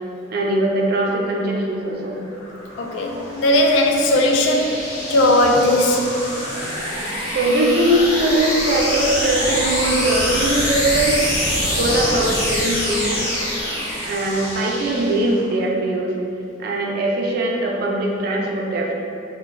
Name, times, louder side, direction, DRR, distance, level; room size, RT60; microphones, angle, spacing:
voice 1, 0.3-2.2 7.3-11.2 11.8-13.2 14.0-16.2 16.6-18.9, right 1 dB, 55° right, -1 dB, 0.4 m, -21 dB
sound 1, 2.1-15.5, left 1 dB, 85° left, 1.1 m, -25 dB
voice 2, 2.8-4.7 5.1-6.0, left 1 dB, 70° left, 2 dB, 0.3 m, -17 dB
2.4 x 2.2 x 3.1 m, 2.5 s
head